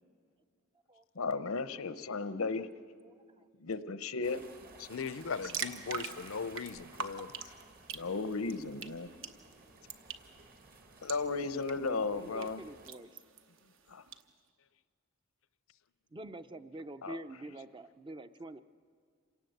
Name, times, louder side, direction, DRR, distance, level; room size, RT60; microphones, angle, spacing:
voice 1, 1.1-2.7 3.6-4.4 4.8-4.9 7.9-9.1 11.0-12.6 13.9-14.0 17.0-17.2, left 4 dB, 90° left, 12 dB, 0.9 m, -35 dB
sound 1, 4.2-12.9, right 3 dB, 45° right, 1.5 m, -56 dB
voice 2, 4.9-7.3, left 5 dB, 65° left, 16 dB, 0.5 m, -39 dB
sound 2, 5.1-14.2, right 6 dB, 65° right, 1.1 m, -45 dB
voice 3, 12.2-13.1 16.1-18.6, right 2 dB, 25° right, 11 dB, 0.5 m, -46 dB
27.5 x 18.0 x 7.9 m, 2.1 s
head